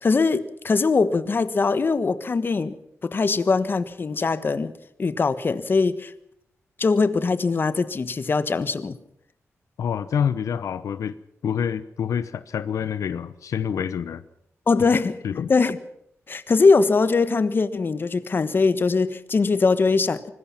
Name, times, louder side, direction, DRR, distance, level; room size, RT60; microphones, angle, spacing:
voice 1, 0.0-2.8 3.0-4.7 5.0-6.1 6.8-8.9 14.7-15.2 15.5-15.8 16.3-20.2, left 4 dB, 40° left, 13 dB, 1.3 m, -21 dB
voice 2, 9.8-11.1 11.4-14.2 15.2-15.5, left 8 dB, 90° left, 14 dB, 0.9 m, -27 dB
25.0 x 20.0 x 5.9 m, 0.77 s
wide cardioid pair, 105°, 5 cm